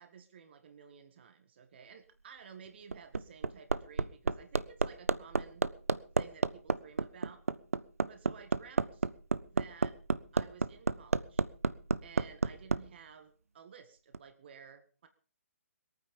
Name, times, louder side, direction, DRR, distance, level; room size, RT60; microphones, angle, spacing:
voice 1, 0.0-5.7 6.1-7.4 8.1-9.1 9.5-10.0 10.3-11.4 12.0-15.1, right 7 dB, 45° right, 8 dB, 1.7 m, -54 dB
Hammer, 2.7-12.8 14.1-14.2, right 4 dB, 75° right, 0.7 m, -30 dB
21.0 x 9.4 x 5.3 m, 0.39 s
figure-of-eight pair, 130°, 8 cm